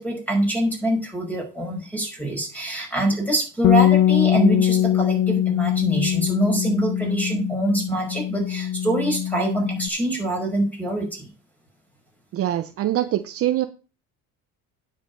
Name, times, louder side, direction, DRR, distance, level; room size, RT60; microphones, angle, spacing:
voice 1, 0.0-11.3, right 1 dB, 5° left, 0 dB, 5.4 m, -25 dB
Bass guitar, 3.6-9.9, left 11 dB, 65° left, 1.0 m, -22 dB
voice 2, 12.3-13.7, right 13 dB, 45° right, 9 dB, 0.8 m, -23 dB
9.5 x 7.4 x 5.4 m, 0.34 s
cardioid pair, 140°, 33 cm